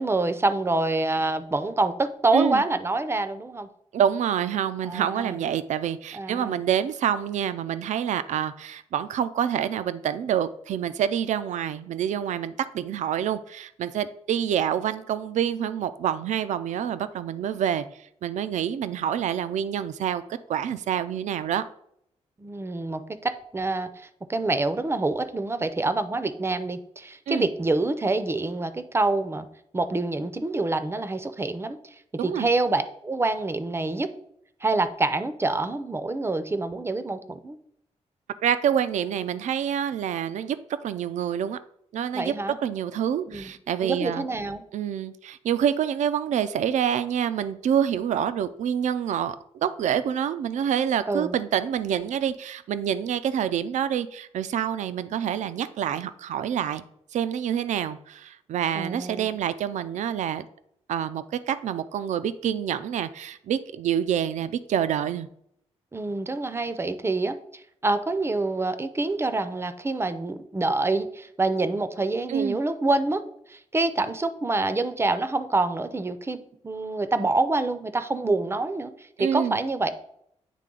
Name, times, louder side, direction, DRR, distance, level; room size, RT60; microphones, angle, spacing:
voice 1, 0.0-3.7 4.8-5.4 6.1-6.6 22.4-29.5 29.7-31.8 32.2-34.1 34.6-37.6 42.1-42.6 43.3-43.5 43.8-44.6 51.1-51.3 58.8-59.3 65.9-73.2 73.5-78.9 79.2-79.9, right 2 dB, 20° right, 11 dB, 0.5 m, -26 dB
voice 2, 3.9-20.2 20.5-21.6 27.3-27.5 32.2-32.5 38.4-40.6 40.8-41.6 41.9-42.3 42.6-44.3 44.7-56.8 57.1-60.4 60.9-65.3 72.3-72.6 79.2-79.6, right 9 dB, 80° right, 13 dB, 0.4 m, -27 dB
9.2 x 3.2 x 3.8 m, 0.73 s
cardioid pair, 95°, 12 cm